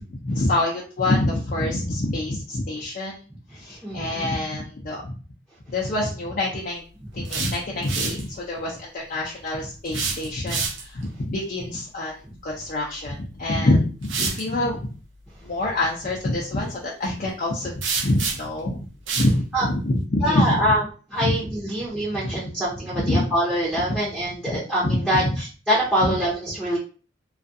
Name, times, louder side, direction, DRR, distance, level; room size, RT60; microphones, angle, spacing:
voice 1, 0.0-3.2 3.5-5.1 5.7-6.8 7.1-12.1 12.4-14.9 15.4-18.8 19.2-20.6 21.2-21.3 22.2-22.3 22.9-23.3 23.9-24.0 24.8-25.3 26.0-26.1, left 1 dB, 45° left, -3 dB, 0.5 m, -26 dB
voice 2, 3.8-4.5 12.2-12.3 19.5-19.6 20.2-20.8 21.1-26.8, equal, 5° right, -7 dB, 0.7 m, -24 dB
sound 1, 7.1-8.2 9.8-11.0 13.1-13.2 14.0-14.4 17.8-18.6 19.1-19.3, right 5 dB, 80° right, 0.5 m, -28 dB
2.4 x 2.2 x 2.6 m, 0.38 s
head